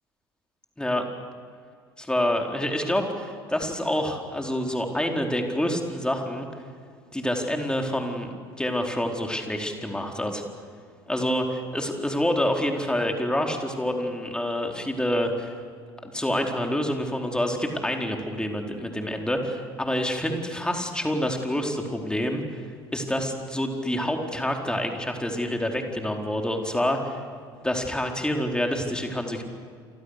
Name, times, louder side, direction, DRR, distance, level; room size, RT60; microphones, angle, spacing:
voice 1, 2.0-6.5 7.1-10.4 11.1-15.6 16.0-22.6 22.9-27.2 27.6-29.4, left 1 dB, 5° left, 2 dB, 4.4 m, -27 dB
29.0 x 25.5 x 6.7 m, 2.1 s
figure-of-eight pair, 60°, 13 cm